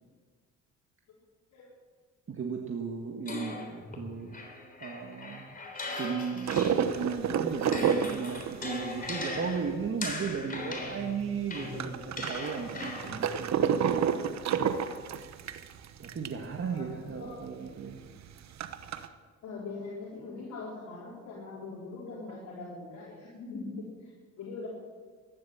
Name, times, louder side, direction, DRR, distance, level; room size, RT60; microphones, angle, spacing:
voice 1, 2.3-4.4 4.8-5.5 6.0-14.8 16.0-18.0, right 5 dB, 45° right, 1 dB, 1.7 m, -36 dB
sound 1, 3.3-7.1 7.4-13.3, left 2 dB, 30° left, 3.5 m, -39 dB
sound 2, 6.5-10.5 10.8-10.9 11.1-16.5 16.9-17.0 17.2-17.3 17.8-19.1, right 8 dB, 65° right, 1.0 m, -30 dB
voice 2, 16.7-17.4 19.4-24.7, left 3 dB, 75° left, -6 dB, 4.2 m, -42 dB
14.5 x 11.5 x 7.1 m, 1.5 s
cardioid pair, 90°, 30 cm